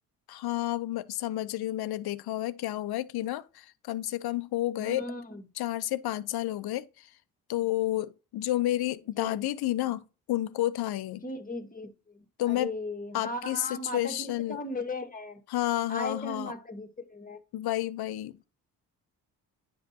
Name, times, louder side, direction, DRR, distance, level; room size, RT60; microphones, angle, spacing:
voice 1, 0.3-5.1 5.6-7.1 7.5-10.0 10.3-11.2 12.4-12.7 13.1-14.6 15.5-16.5 17.5-18.5, left 14 dB, 70° left, 0.7 m, -30 dB
voice 2, 4.8-5.5 9.2-9.4 11.2-15.4 15.9-17.4, left 2 dB, 20° left, 1.6 m, -37 dB
9.8 x 5.1 x 2.8 m
supercardioid pair, 50°, 39 cm